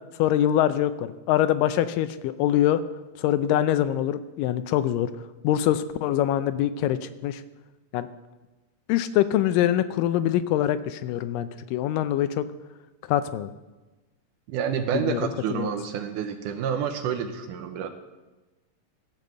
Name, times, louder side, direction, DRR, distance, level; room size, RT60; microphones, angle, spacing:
voice 1, 0.2-2.8 3.2-5.1 5.4-7.4 7.9-8.1 8.9-12.5 13.1-13.5 14.9-15.7, left 12 dB, 80° left, 12 dB, 2.1 m, -24 dB
voice 2, 14.5-17.9, right 8 dB, 75° right, 7 dB, 2.1 m, -28 dB
14.5 x 5.2 x 7.6 m, 1.1 s
omnidirectional pair, 4.0 m